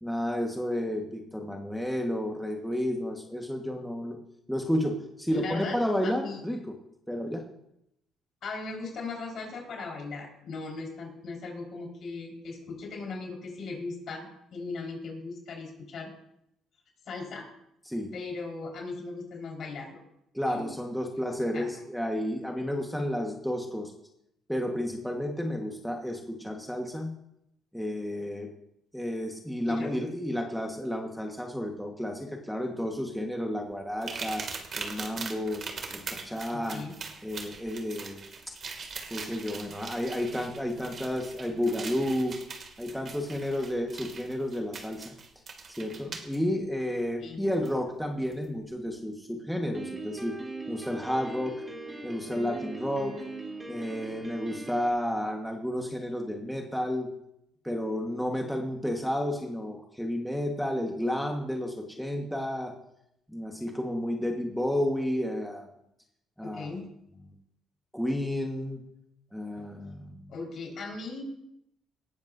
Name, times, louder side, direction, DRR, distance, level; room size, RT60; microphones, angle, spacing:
voice 1, 0.0-4.2 4.5-6.7 7.1-7.4 17.9-18.1 20.3-23.9 24.5-27.1 27.7-28.5 28.9-34.5 34.8-35.6 35.9-36.8 37.2-38.2 38.5-38.6 39.1-42.4 42.8-45.1 45.7-50.4 50.7-51.6 52.0-53.2 53.7-57.1 57.6-62.7 63.3-65.6 66.4-66.7 67.9-68.8 69.3-70.1, left 1 dB, ahead, 1 dB, 1.4 m, -31 dB
voice 2, 5.3-5.7 6.0-6.4 8.4-16.1 17.1-17.4 18.1-20.0 20.4-20.7 21.5-21.7 29.6-29.9 36.5-36.9 47.2-47.4 66.4-66.8 69.6-69.7 70.3-71.2, left 3 dB, 60° left, 0 dB, 4.6 m, -38 dB
sound 1, 34.0-46.4 47.6-47.7 48.3-48.4, right 5 dB, 45° right, 2.3 m, -41 dB
Piano, 49.7-54.9, right 2 dB, 15° right, 3.6 m, -40 dB
18.5 x 14.0 x 2.7 m, 0.78 s
cardioid pair, 105°, 0 cm